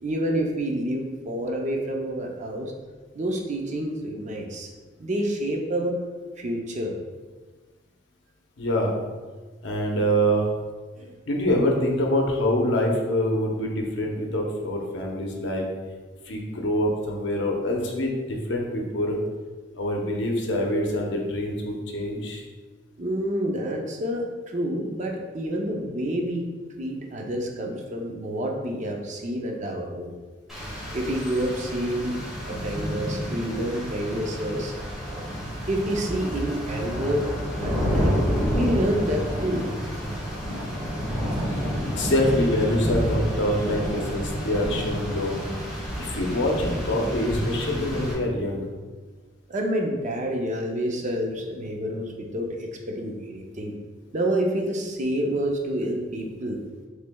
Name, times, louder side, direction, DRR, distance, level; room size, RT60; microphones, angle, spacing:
voice 1, 0.0-2.7 3.1-4.7 5.0-6.0 6.4-6.9 11.0-11.1 23.0-26.5 26.8-30.1 30.9-32.1 32.4-34.7 35.7-37.3 37.6-38.2 38.6-39.6 49.5-53.7 54.1-56.6, right 1 dB, 40° right, 1 dB, 0.5 m, -28 dB
voice 2, 8.6-8.9 9.6-10.5 11.3-15.6 16.2-19.2 19.8-22.4 41.5-41.6 41.9-45.4 46.0-48.7, equal, 65° left, 0 dB, 0.7 m, -25 dB
Rain, 30.5-48.1, equal, ahead, 1.2 m, -29 dB
6.2 x 3.2 x 2.3 m, 1.4 s
head